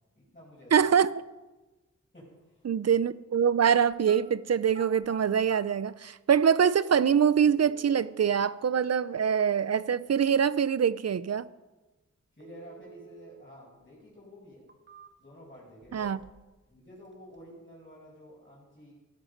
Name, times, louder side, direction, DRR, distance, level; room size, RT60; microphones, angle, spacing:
voice 1, 0.1-0.9 2.1-2.7 12.3-14.7 15.2-16.1 16.7-18.9, equal, 30° left, 5.9 m, -50 dB
voice 2, 0.7-1.1 2.6-11.5 15.9-16.2, right 7 dB, 60° right, 0.6 m, -24 dB
sound 1, 3.9-4.2 4.6-5.6 6.6-6.7 7.4-8.4 12.4-13.4 13.8-13.9 14.5-15.4 15.8-16.5 16.8-17.4, right 4 dB, 40° right, 1.4 m, -50 dB
15.5 x 13.0 x 5.3 m
wide cardioid pair, 70°, 30 cm